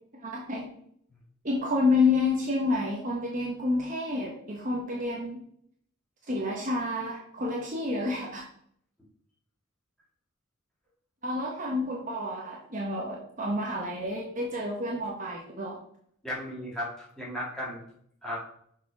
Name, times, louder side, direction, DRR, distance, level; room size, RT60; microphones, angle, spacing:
voice 1, 0.2-0.7 1.4-5.4 6.3-8.4 11.2-15.8, left 2 dB, 35° right, -1 dB, 1.0 m, -29 dB
voice 2, 16.2-17.8 18.2-18.4, left 1 dB, 5° left, -7 dB, 2.2 m, -35 dB
6.1 x 4.4 x 4.9 m, 0.67 s
head